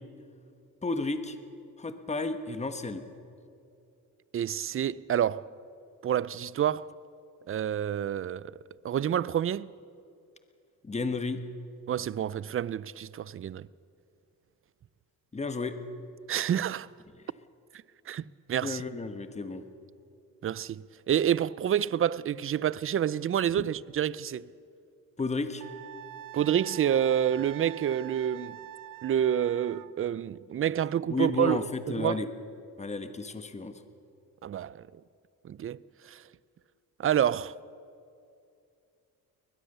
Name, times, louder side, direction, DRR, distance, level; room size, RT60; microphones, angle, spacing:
voice 1, 0.8-1.4 1.8-3.0 10.8-11.4 15.3-15.8 18.6-19.6 25.2-25.6 31.1-32.3 32.8-33.7, left 3 dB, 20° left, 1.3 m, -32 dB
voice 2, 4.3-5.5 6.0-6.9 7.5-8.5 8.8-9.7 11.9-13.7 16.3-16.9 18.1-18.2 18.5-18.8 20.4-24.5 26.3-28.6 29.0-32.2 34.4-34.9 35.4-36.2 37.0-37.5, right 9 dB, 40° right, 0.5 m, -28 dB
Wind instrument woodwind instrument, 25.6-29.9, right 12 dB, 70° right, 0.8 m, -45 dB
22.0 x 20.5 x 6.8 m
cardioid pair, 105°, 34 cm